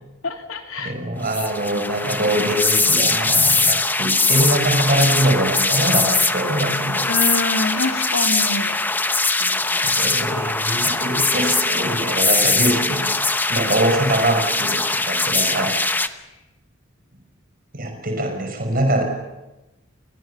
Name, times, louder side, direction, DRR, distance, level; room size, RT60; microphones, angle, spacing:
voice 1, 0.2-0.9 1.2-1.4 1.7-1.8 2.1-2.3 7.1-8.8 9.4-10.0, left 3 dB, 85° left, 5 dB, 2.9 m, -26 dB
voice 2, 0.8-7.1 9.5-13.1 13.5-15.8 17.7-19.0, right 1 dB, 45° right, 5 dB, 5.7 m, -23 dB
sound 1, 1.3-16.1, left 3 dB, 10° left, 0.8 m, -21 dB
29.5 x 22.0 x 7.1 m, 1.0 s
head